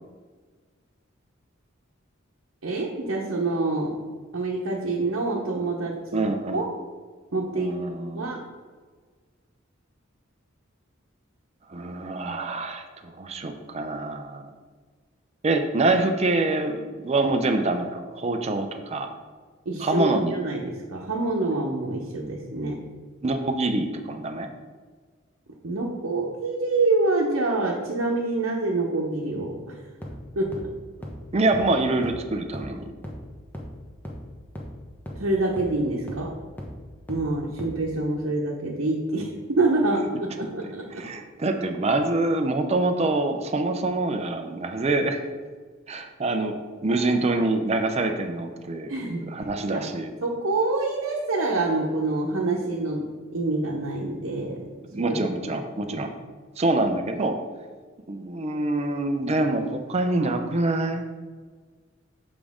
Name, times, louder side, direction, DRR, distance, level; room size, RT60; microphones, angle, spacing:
voice 1, 2.6-3.9 4.3-6.2 6.5-6.7 7.3-7.7 8.1-8.4 19.7-22.8 25.6-29.8 30.4-30.5 35.2-36.3 37.1-41.0 48.9-49.3 49.7-49.8 50.2-53.0 53.3-54.6 55.0-55.2 55.4-55.6 55.9-56.0, right 2 dB, 75° right, -3 dB, 0.9 m, -26 dB
voice 2, 6.1-6.6 7.5-8.3 11.7-14.5 15.4-19.1 19.8-20.4 23.2-24.5 31.3-32.8 40.9-45.3 45.9-48.9 49.3-50.1 54.9-56.1 56.6-57.4 58.1-61.0, right 2 dB, 30° right, 5 dB, 0.5 m, -25 dB
sound 1, 30.0-30.1 30.5-30.6 31.0-31.1 31.5-31.6 32.0-32.1 32.5-32.6 33.0-33.1 33.5-33.6 34.0-34.1 34.6-34.7 35.1-35.2 35.6-35.7 36.1-36.2 36.6-36.7 37.1-37.2 37.6-37.7, equal, 10° left, 0.9 m, -35 dB
7.3 x 4.9 x 3.6 m, 1.5 s
head